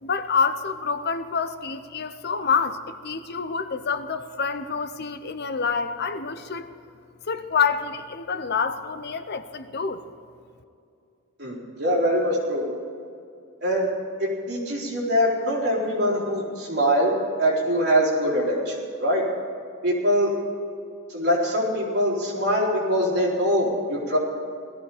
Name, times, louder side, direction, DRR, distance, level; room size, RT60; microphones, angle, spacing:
voice 1, 0.0-6.7 7.3-10.0, left 5 dB, 50° left, 11 dB, 0.7 m, -27 dB
voice 2, 11.4-12.6 13.6-13.9 14.2-17.1 17.4-19.2 19.8-20.3 21.1-24.2, equal, 50° right, -4 dB, 4.2 m, -23 dB
18.0 x 13.5 x 5.0 m, 2.5 s
head